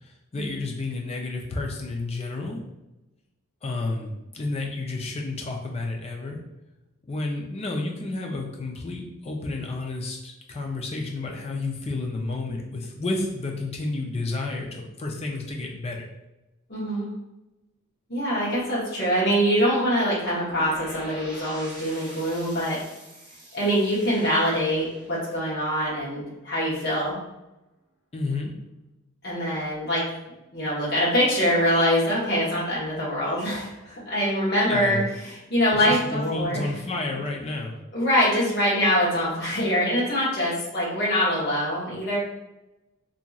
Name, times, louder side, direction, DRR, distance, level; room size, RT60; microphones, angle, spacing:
voice 1, 0.0-2.6 3.6-6.4 7.1-16.1 28.1-28.5 34.7-35.0 35.7-37.7, left 2 dB, 30° left, 1 dB, 0.4 m, -31 dB
voice 2, 16.7-17.1 18.1-22.8 23.5-27.2 29.2-30.0 30.5-36.7 37.9-42.2, equal, 50° left, -7 dB, 1.0 m, -24 dB
sound 1, 20.4-26.3, equal, 10° right, 1.3 m, -45 dB
2.8 x 2.6 x 2.3 m, 0.97 s
head